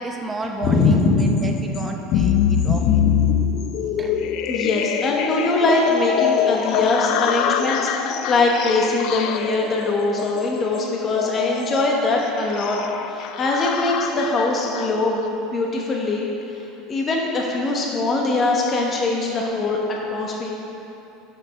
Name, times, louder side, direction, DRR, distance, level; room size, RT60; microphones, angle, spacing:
voice 1, 0.0-3.1 4.0-4.1, right 2 dB, 15° right, 3 dB, 0.7 m, -32 dB
sound 1, 0.6-15.3, left 8 dB, 55° left, 0.4 m, -24 dB
voice 2, 0.6-1.3 2.8-3.0 4.5-12.8 13.1-16.3 16.9-20.5, left 2 dB, 30° left, -1 dB, 1.0 m, -22 dB
6.6 x 6.4 x 5.7 m, 2.9 s
supercardioid pair, 135°, 0 cm